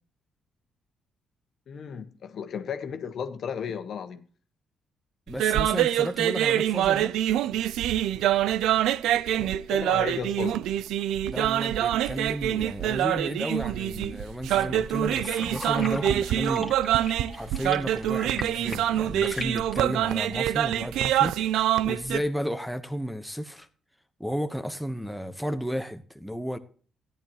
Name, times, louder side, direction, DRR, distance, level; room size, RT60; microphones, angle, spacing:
voice 1, 1.7-4.2 9.3-10.6, left 7 dB, 65° left, 1.4 m, -34 dB
voice 2, 5.3-7.1 11.2-17.0 17.3-23.7 24.2-26.6, equal, ahead, 1.1 m, -33 dB
sound 1, 5.3-22.2, right 12 dB, 85° right, 0.5 m, -25 dB
sound 2, 14.5-19.9, left 3 dB, 25° left, 2.2 m, -39 dB
13.5 x 10.5 x 3.0 m
cardioid pair, 90°, 0 cm